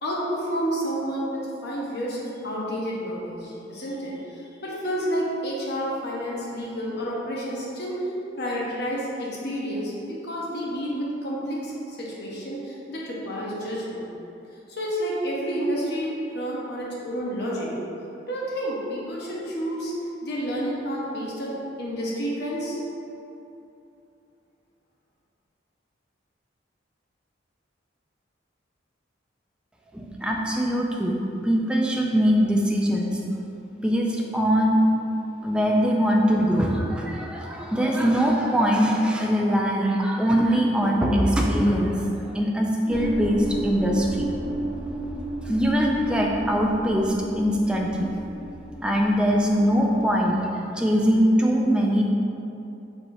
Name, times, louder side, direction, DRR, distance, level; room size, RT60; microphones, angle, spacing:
voice 1, 0.0-8.0 8.4-14.1 14.7-17.7 18.3-19.9 20.2-22.8, equal, 60° left, -5 dB, 0.8 m, -30 dB
voice 2, 29.9-31.2 31.4-33.2 33.8-34.8 35.4-44.3 45.4-48.1 48.8-50.4 50.7-52.0, equal, 5° right, -1 dB, 0.4 m, -22 dB
sound 1, 42.9-50.4, right 2 dB, 30° left, 1.4 m, -34 dB
4.7 x 4.2 x 2.6 m, 2.8 s
head